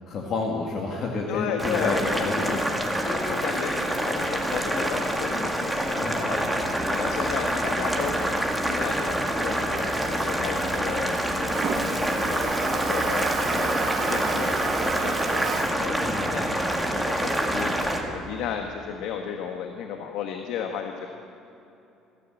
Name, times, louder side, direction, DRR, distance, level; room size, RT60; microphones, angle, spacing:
voice 1, 0.1-2.9 6.0-6.5 6.8-6.9 10.4-10.6 16.0-16.4, left 3 dB, 40° left, 0 dB, 2.1 m, -31 dB
voice 2, 1.3-2.3 3.0-21.1, left 7 dB, 70° left, 4 dB, 1.5 m, -34 dB
Boiling, 1.6-18.0, right 1 dB, ahead, 1.8 m, -26 dB
Toilet flush, 6.3-18.5, right 5 dB, 35° right, 1.7 m, -35 dB
26.0 x 13.5 x 7.8 m, 2.8 s
cardioid pair, 160°, 0 cm